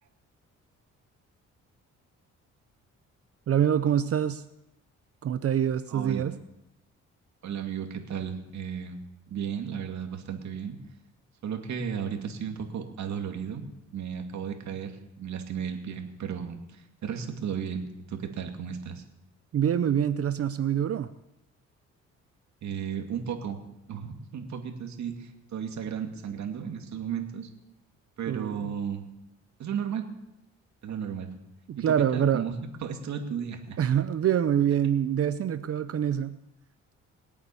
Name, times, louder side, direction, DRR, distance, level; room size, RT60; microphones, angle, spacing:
voice 1, 3.5-4.4 5.2-6.4 19.5-21.1 28.3-28.7 31.7-32.4 33.8-36.4, right 9 dB, 50° right, 12 dB, 0.7 m, -25 dB
voice 2, 5.9-6.3 7.4-9.0 9.3-10.8 11.4-13.7 13.9-19.0 22.6-23.6 23.9-27.5 28.2-29.0 29.6-30.1 30.8-31.3 31.8-32.5 32.8-33.8, right 7 dB, 65° right, 4 dB, 2.4 m, -34 dB
21.5 x 8.7 x 7.0 m, 0.87 s
cardioid pair, 90°, 30 cm